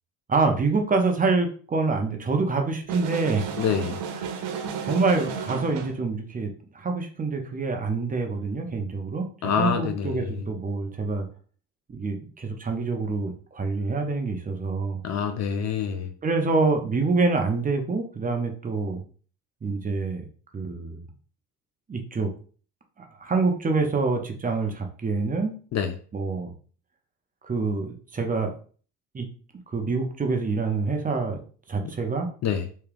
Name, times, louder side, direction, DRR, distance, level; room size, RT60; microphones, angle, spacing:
voice 1, 0.3-3.5 4.2-4.4 4.8-11.3 11.9-15.0 16.2-19.0 19.6-20.2 20.5-21.0 21.9-22.3 23.0-25.5 26.1-26.5 27.4-28.5 29.1-29.3 29.7-31.4 31.7-32.3, right 3 dB, 20° right, 4 dB, 0.6 m, -26 dB
sound 1, 2.9-6.0, right 6 dB, 70° right, 0.7 m, -33 dB
voice 2, 3.6-4.0 9.4-10.4 15.0-16.1 25.7-25.9 32.4-32.7, left 7 dB, 40° left, 8 dB, 0.4 m, -26 dB
3.4 x 2.3 x 3.4 m, 0.42 s
supercardioid pair, 95°, 42 cm